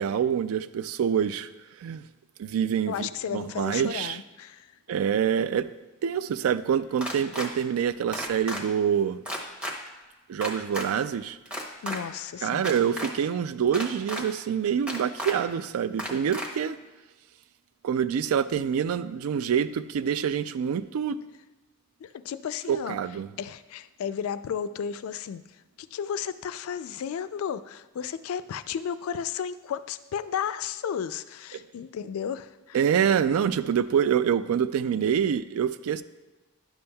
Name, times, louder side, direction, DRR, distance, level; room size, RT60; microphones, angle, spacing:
voice 1, 0.0-1.5 1.8-2.0 2.4-4.2 4.9-5.7 6.0-9.2 10.3-11.4 12.4-16.8 17.8-21.2 22.7-23.3 32.7-36.0, right 8 dB, 80° right, 14 dB, 0.3 m, -26 dB
voice 2, 2.9-4.7 11.8-12.8 22.0-23.0 23.4-25.4 25.8-32.8, left 8 dB, 80° left, 13 dB, 0.3 m, -33 dB
sound 1, 7.0-7.5 8.1-8.6 9.2-9.7 10.4-10.9 11.5-12.0 12.6-13.1 13.7-14.2 14.9-15.3 16.0-16.5, equal, 5° right, 0.7 m, -33 dB
10.5 x 7.0 x 2.2 m, 1.2 s
head